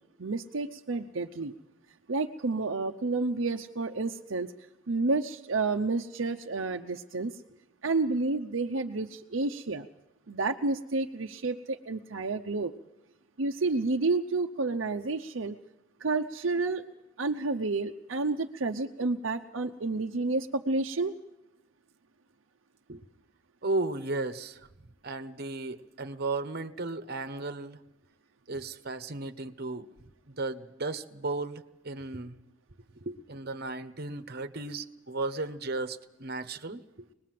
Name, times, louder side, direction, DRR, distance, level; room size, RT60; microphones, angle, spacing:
voice 1, 0.2-1.6 2.1-4.5 4.9-7.4 7.8-9.9 10.3-12.7 13.4-15.6 16.0-16.8 17.2-21.1, right 3 dB, 75° right, 4 dB, 0.8 m, -30 dB
voice 2, 23.6-24.6 25.0-27.8 28.5-29.9 30.3-32.4 33.0-37.1, right 3 dB, 50° right, 9 dB, 1.2 m, -35 dB
25.0 x 20.0 x 7.6 m, 0.97 s
head